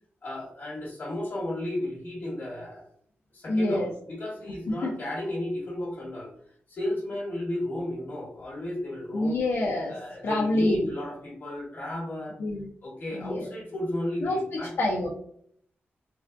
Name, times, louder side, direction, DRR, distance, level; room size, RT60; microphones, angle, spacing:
voice 1, 0.2-2.9 3.3-6.3 6.7-9.4 9.9-12.3 12.8-14.7, left 1 dB, 45° left, -3 dB, 1.3 m, -33 dB
voice 2, 3.5-3.9 4.8-5.1 9.1-10.9 12.4-12.7 13.1-13.5 14.2-14.4 14.8-15.1, left 1 dB, 75° left, -3 dB, 0.5 m, -27 dB
3.4 x 2.2 x 2.5 m, 0.63 s
wide cardioid pair, 125°, 4 cm